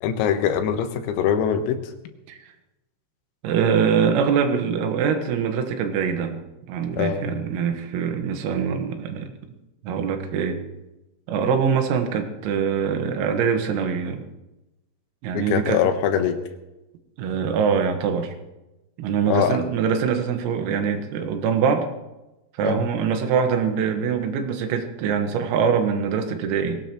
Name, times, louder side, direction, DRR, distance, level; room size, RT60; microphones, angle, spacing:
voice 1, 0.0-1.9 7.0-7.3 15.3-16.4 19.3-19.6 22.6-22.8, left 8 dB, 85° left, 7 dB, 4.0 m, -23 dB
voice 2, 3.4-6.4 6.7-9.3 9.8-10.6 11.3-14.3 15.2-15.8 17.2-18.3 19.0-21.9 22.6-26.8, right 6 dB, 90° right, 6 dB, 4.2 m, -23 dB
22.5 x 17.0 x 3.1 m, 1.0 s
omnidirectional pair, 6.0 m